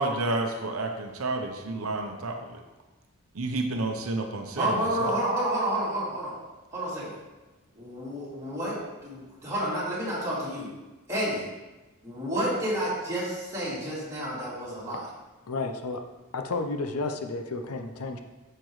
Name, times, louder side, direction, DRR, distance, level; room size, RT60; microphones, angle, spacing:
voice 1, 0.0-2.4 3.3-5.1, right 2 dB, 70° right, 4 dB, 0.8 m, -30 dB
voice 2, 4.6-6.3 6.7-7.1 7.7-8.8 9.0-10.7 11.1-11.5 12.0-15.0, right 1 dB, 15° right, -9 dB, 2.8 m, -30 dB
voice 3, 15.5-16.0 16.3-18.2, left 3 dB, 90° left, 6 dB, 0.7 m, -31 dB
8.8 x 6.8 x 3.2 m, 1.1 s
head